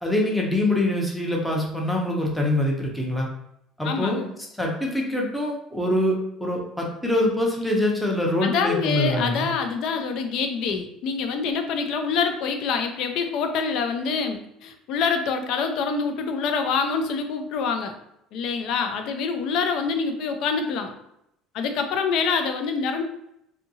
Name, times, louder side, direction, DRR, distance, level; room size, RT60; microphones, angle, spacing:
voice 1, 0.0-3.3 3.8-4.2 4.6-9.5, left 1 dB, 5° left, -1 dB, 0.6 m, -24 dB
voice 2, 3.8-4.3 8.4-17.9 18.3-20.9 21.5-23.0, left 5 dB, 60° left, 6 dB, 0.4 m, -26 dB
2.7 x 2.5 x 2.7 m, 0.79 s
cardioid pair, 140°, 0 cm